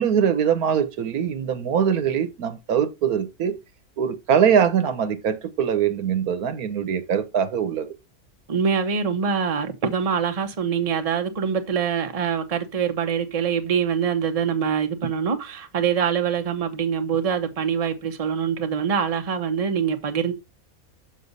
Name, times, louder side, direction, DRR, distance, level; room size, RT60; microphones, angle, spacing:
voice 1, 0.0-3.6 4.0-7.9, right 8 dB, 85° right, 1.4 m, -22 dB
voice 2, 8.5-20.3, right 7 dB, 30° right, 0.9 m, -24 dB
6.7 x 6.5 x 4.0 m
omnidirectional pair, 1.5 m